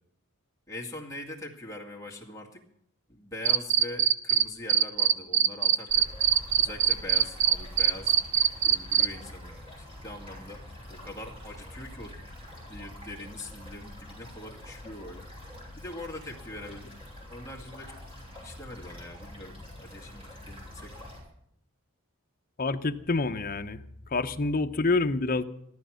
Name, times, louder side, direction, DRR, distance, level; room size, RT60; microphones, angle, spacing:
voice 1, 0.7-2.6 3.1-6.1 6.5-8.1 8.6-10.6 10.9-12.2 12.7-15.2 15.8-16.9 17.3-18.0 18.4-21.0, left 1 dB, 15° left, -1 dB, 2.3 m, -42 dB
Cricket, 3.5-4.4 4.7-9.1, right 9 dB, 50° right, 0.7 m, -21 dB
sound 1, 5.9-21.2, left 1 dB, 25° right, 6.3 m, -45 dB
voice 2, 22.6-23.8 24.1-25.4, left 3 dB, 40° left, 7 dB, 0.8 m, -27 dB
15.0 x 13.0 x 6.4 m, 0.70 s
head